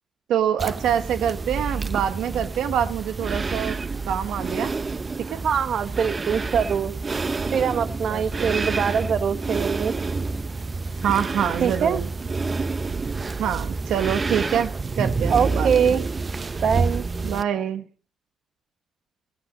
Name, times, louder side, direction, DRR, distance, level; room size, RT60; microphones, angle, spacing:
voice 1, 0.3-3.8 4.1-4.7 5.3-5.4 8.1-8.9 11.0-12.1 13.4-15.9 17.2-17.8, right 9 dB, 90° right, 10 dB, 1.0 m, -26 dB
sound 1, 0.6-17.4, right 3 dB, 30° right, 0.7 m, -28 dB
voice 2, 5.4-7.0 7.5-9.9 11.6-12.0 15.3-16.0 16.6-17.0, right 7 dB, 65° right, 12 dB, 1.2 m, -23 dB
15.5 x 15.5 x 5.2 m, 0.40 s
cardioid pair, 100°, 0 cm